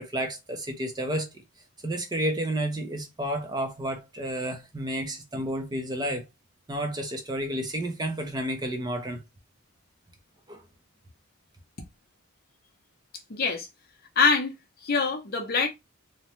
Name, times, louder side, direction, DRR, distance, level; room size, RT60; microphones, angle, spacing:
voice 1, 0.0-1.4 1.8-6.2 6.7-9.2 10.5-10.6, right 1 dB, 20° right, 0.4 m, -31 dB
voice 2, 13.3-13.7 14.2-14.5 14.8-15.7, left 5 dB, 45° left, 0.6 m, -24 dB
2.7 x 2.1 x 2.9 m
head